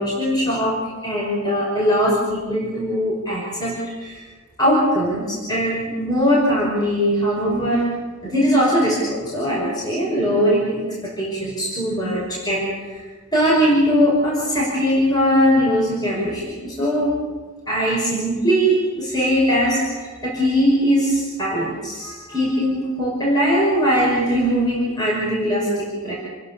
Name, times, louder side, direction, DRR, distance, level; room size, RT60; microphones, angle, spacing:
voice 1, 0.0-4.2 4.6-7.9 8.2-13.0 13.3-17.1 17.7-26.1, equal, 20° left, -3 dB, 5.7 m, -20 dB
29.0 x 20.5 x 7.0 m, 1.3 s
head